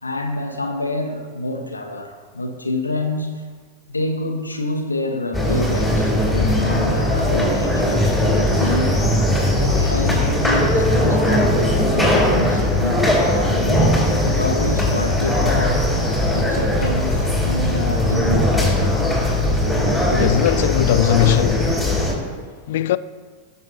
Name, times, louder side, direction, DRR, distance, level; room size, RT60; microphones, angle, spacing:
voice 1, 0.0-3.5 3.9-9.0 9.6-13.2 13.5-15.8 16.3-18.7 22.4-22.5, left 1 dB, 80° left, 1.0 m, -27 dB
sound 1, 5.3-22.1, left 1 dB, ahead, 3.0 m, -19 dB
voice 2, 20.1-21.7 22.7-23.0, left 13 dB, 55° left, 0.3 m, -19 dB
16.5 x 6.8 x 2.7 m
figure-of-eight pair, 90°, 0 cm